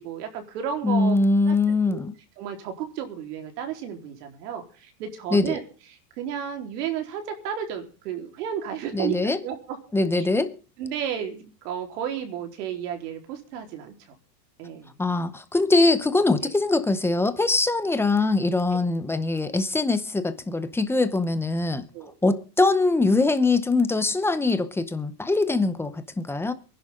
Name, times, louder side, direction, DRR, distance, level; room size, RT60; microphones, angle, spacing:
voice 1, 0.0-1.1 1.5-2.0 2.4-5.6 6.2-9.8 10.2-10.3 10.8-13.9 14.6-14.9 16.4-16.5 21.9-22.1, right 9 dB, 70° right, 4.2 m, -32 dB
voice 2, 0.8-2.1 5.3-5.6 8.9-9.4 9.9-10.5 15.0-21.8 22.2-26.5, left 3 dB, 5° left, 0.8 m, -22 dB
23.5 x 11.0 x 3.8 m
supercardioid pair, 160°, 49 cm